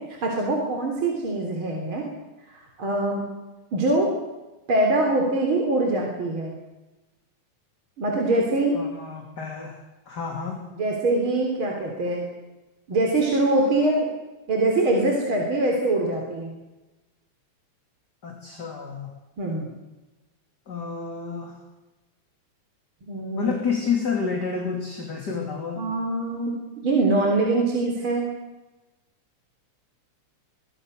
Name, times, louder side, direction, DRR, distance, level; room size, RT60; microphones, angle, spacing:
voice 1, 0.2-2.1 2.5-3.3 3.7-4.1 4.7-6.5 8.0-8.8 10.7-12.3 12.9-14.1 14.5-16.5 19.4-19.7 23.1-23.5 25.8-26.5 26.8-28.3, right 2 dB, 45° right, 1 dB, 4.2 m, -23 dB
voice 2, 8.7-9.8 10.1-10.6 18.2-19.1 20.7-21.6 23.3-25.9, left 5 dB, 35° left, 1 dB, 3.6 m, -29 dB
23.5 x 23.0 x 6.6 m, 1.1 s
omnidirectional pair, 3.4 m